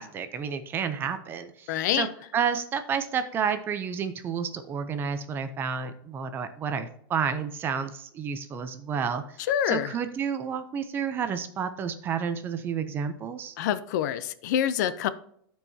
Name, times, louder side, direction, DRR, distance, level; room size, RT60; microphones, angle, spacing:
voice 1, 0.0-2.1 2.3-9.4 9.7-13.5, right 7 dB, 20° right, 10 dB, 0.4 m, -30 dB
voice 2, 1.7-2.1 9.5-9.9 13.6-15.1, left 10 dB, 50° left, 14 dB, 0.5 m, -26 dB
13.0 x 4.6 x 2.7 m, 0.68 s
supercardioid pair, 170°, 12 cm